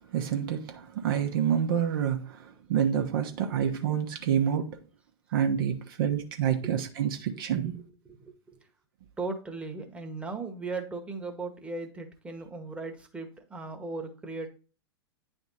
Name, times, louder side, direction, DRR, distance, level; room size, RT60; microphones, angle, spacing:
voice 1, 0.1-4.8 5.3-7.8, right 8 dB, 55° right, 0.9 m, -28 dB
voice 2, 7.3-8.7 9.2-14.5, right 3 dB, 10° right, 1.2 m, -38 dB
9.3 x 3.5 x 4.1 m
figure-of-eight pair, 100°, 14 cm